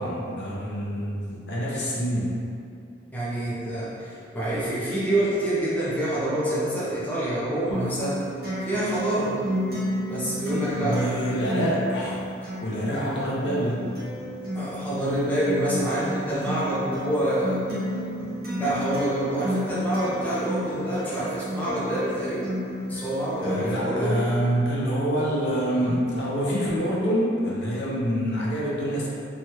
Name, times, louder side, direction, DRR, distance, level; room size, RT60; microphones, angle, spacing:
voice 1, 0.0-2.4 10.8-12.3 12.6-13.9 23.4-29.1, equal, 60° left, -6 dB, 0.6 m, -26 dB
voice 2, 3.1-8.2 8.6-9.4 10.1-11.5 14.5-17.6 18.6-22.5 22.9-24.3, right 1 dB, 10° left, -10 dB, 0.5 m, -27 dB
Acoustic guitar, 7.7-23.7, equal, 50° right, 0.9 m, -32 dB
3.1 x 2.3 x 2.7 m, 2.5 s
head